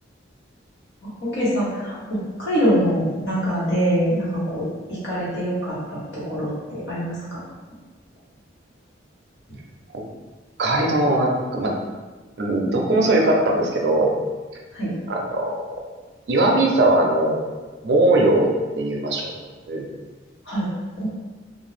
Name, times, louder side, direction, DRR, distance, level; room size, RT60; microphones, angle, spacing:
voice 1, 1.2-7.2 14.7-14.9 20.5-20.7 21.0-21.1, equal, 85° left, -8 dB, 1.2 m, -24 dB
voice 2, 10.6-11.7 12.4-14.1 15.1-15.6 16.3-17.4 17.8-18.5 18.8-19.3 19.7-19.9, right 2 dB, 65° right, 0 dB, 0.5 m, -19 dB
2.6 x 2.2 x 3.2 m, 1.3 s
head